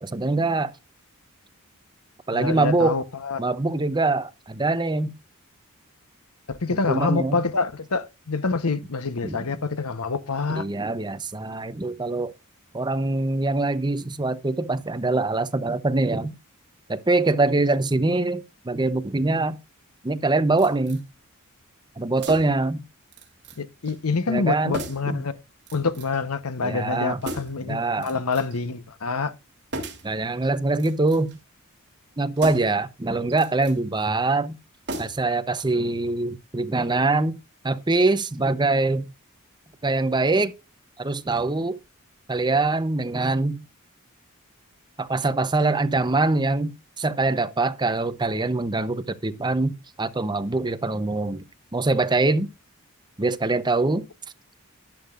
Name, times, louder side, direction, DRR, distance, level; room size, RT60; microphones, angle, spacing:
voice 1, 0.0-0.7 2.3-3.0 3.4-5.1 6.7-7.4 9.2-9.4 10.5-12.3 12.7-16.3 16.9-19.6 20.0-21.0 22.0-22.8 24.3-24.8 25.1-25.2 26.6-27.2 27.7-28.1 30.0-31.3 32.2-34.6 35.0-37.4 37.6-39.0 39.8-40.5 41.0-41.8 42.3-43.6 45.0-51.4 51.7-52.5 53.2-54.0, right 2 dB, 20° right, 0.7 m, -23 dB
voice 2, 2.3-3.4 6.5-10.6 23.6-25.3 25.7-29.3, left 4 dB, 85° left, 1.0 m, -26 dB
sound 1, 20.6-21.0 22.2-22.7 23.1-23.6 23.9-24.0 24.7-25.1 25.7-26.2 27.2-27.7 28.0-28.6 29.7-30.1 30.7-31.4 32.4-32.8 33.3-33.8 34.9-35.4 35.7-35.8, right 2 dB, 50° right, 3.0 m, -36 dB
12.0 x 11.0 x 2.5 m
head